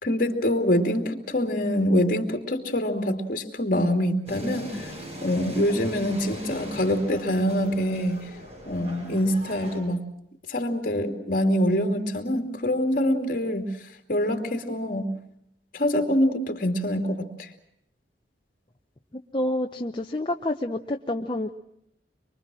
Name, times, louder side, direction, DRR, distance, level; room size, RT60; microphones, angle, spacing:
voice 1, 0.0-4.9 5.2-8.3 8.7-10.0 10.5-13.7 14.1-15.1 15.7-17.5, equal, 50° left, 4 dB, 2.7 m, -25 dB
sound 1, 4.3-9.8, equal, 40° right, 7.8 m, -40 dB
voice 2, 19.1-21.5, left 1 dB, 30° left, 3 dB, 0.8 m, -28 dB
25.0 x 24.0 x 6.2 m, 0.76 s
head